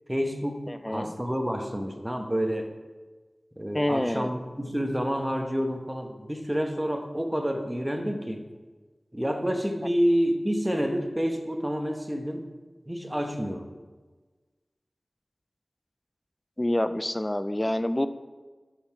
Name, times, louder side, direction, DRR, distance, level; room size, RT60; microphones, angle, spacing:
voice 1, 0.1-2.7 3.6-8.4 9.1-12.5 12.9-13.7, equal, 10° right, 5 dB, 1.1 m, -28 dB
voice 2, 0.7-1.1 3.7-4.3 16.6-18.1, left 1 dB, 20° left, 11 dB, 0.5 m, -27 dB
13.0 x 5.8 x 4.6 m, 1.3 s
wide cardioid pair, 65°, 0 cm